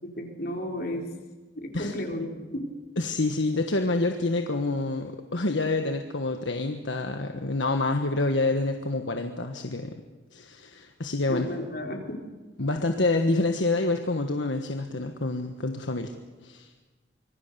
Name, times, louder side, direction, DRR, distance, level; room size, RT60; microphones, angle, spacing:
voice 1, 0.0-1.0 1.6-2.3 2.5-2.6 11.3-12.2, left 1 dB, 55° left, 1 dB, 4.3 m, -33 dB
voice 2, 3.0-10.0 10.3-11.5 12.6-16.1 16.4-16.7, left 2 dB, 80° left, 5 dB, 1.5 m, -27 dB
26.0 x 22.5 x 6.9 m, 1.3 s
head